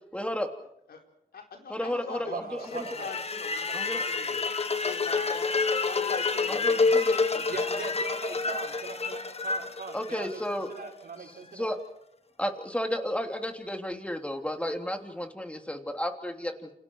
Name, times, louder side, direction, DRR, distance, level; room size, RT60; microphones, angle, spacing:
voice 1, 0.1-0.5 1.7-2.8 3.7-4.0 6.5-7.2 9.9-10.7 11.5-11.8 12.4-16.7, left 1 dB, 10° left, 4 dB, 3.3 m, -32 dB
voice 2, 1.3-2.4 2.7-7.7, left 5 dB, 80° left, 2 dB, 4.5 m, -42 dB
voice 3, 2.1-3.2 7.5-11.7, right 4 dB, 70° right, 2 dB, 5.6 m, -40 dB
All Wound Up, 2.7-10.8, left 4 dB, 40° left, 1.6 m, -28 dB
29.0 x 27.5 x 4.8 m, 0.78 s
cardioid pair, 80°, 16 cm